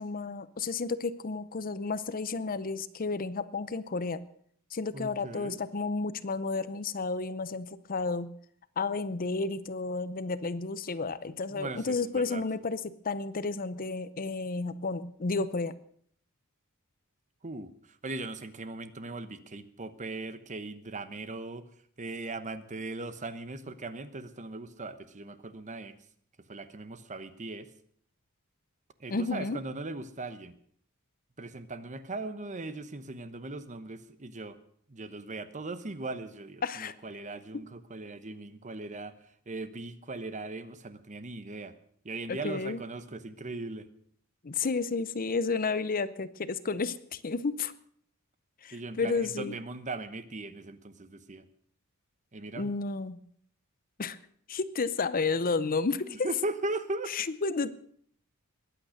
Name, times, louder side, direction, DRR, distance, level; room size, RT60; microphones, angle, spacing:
voice 1, 0.0-4.2 4.7-8.3 8.8-15.7 29.1-29.6 36.6-36.9 42.3-42.8 44.4-47.7 48.6-49.6 52.5-53.2 54.0-54.2 54.5-56.3 57.1-57.7, left 4 dB, 40° left, 15 dB, 0.7 m, -32 dB
voice 2, 4.9-5.6 11.5-12.4 17.4-21.6 22.0-26.0 26.5-27.7 29.0-30.5 31.4-34.6 34.9-39.1 39.5-41.7 42.0-43.9 48.7-51.4 52.3-52.7 56.0-57.1, right 2 dB, 35° right, 12 dB, 1.0 m, -39 dB
21.5 x 9.0 x 6.5 m, 0.62 s
head